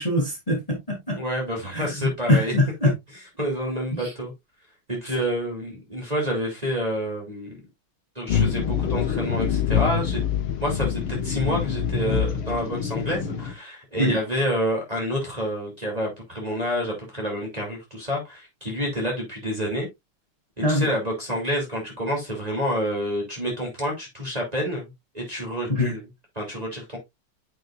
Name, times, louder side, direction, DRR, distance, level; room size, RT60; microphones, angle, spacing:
voice 1, 0.0-1.2 1.7-2.9 14.0-14.1 20.6-20.9 25.7-25.9, left 1 dB, 15° left, 2.9 m, -23 dB
voice 2, 1.2-2.5 3.4-4.3 4.9-7.6 8.1-10.2 10.6-19.9 20.6-24.9 25.1-26.0 26.3-27.0, equal, 15° right, 3.0 m, -28 dB
sound 1, 8.3-13.5, left 8 dB, 75° left, 1.9 m, -25 dB
9.2 x 6.4 x 2.5 m
omnidirectional pair, 2.3 m